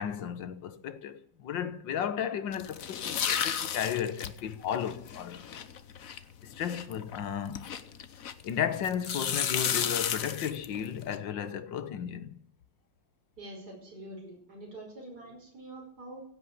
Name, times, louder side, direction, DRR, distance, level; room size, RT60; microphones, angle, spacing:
voice 1, 0.0-5.7 6.4-7.7 8.4-12.3, left 8 dB, 80° left, 1.9 m, -34 dB
sound 1, 2.5-8.5 8.8-11.2, left 8 dB, 55° left, 1.3 m, -33 dB
voice 2, 13.4-16.2, right 1 dB, 55° right, 6.1 m, -45 dB
16.5 x 8.4 x 8.4 m
omnidirectional pair, 2.0 m